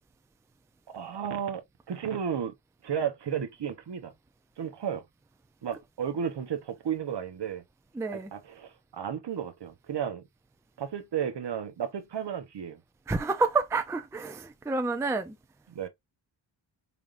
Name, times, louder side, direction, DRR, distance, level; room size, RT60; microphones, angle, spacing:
voice 1, 0.9-2.5 2.8-4.1 4.6-5.0 5.6-7.6 8.1-10.2 10.8-12.8 15.7-15.9, right 8 dB, 55° right, 1.0 m, -33 dB
voice 2, 8.0-8.3 13.1-15.4, right 3 dB, 5° right, 0.4 m, -29 dB
5.0 x 3.6 x 2.5 m
wide cardioid pair, 150°, 48 cm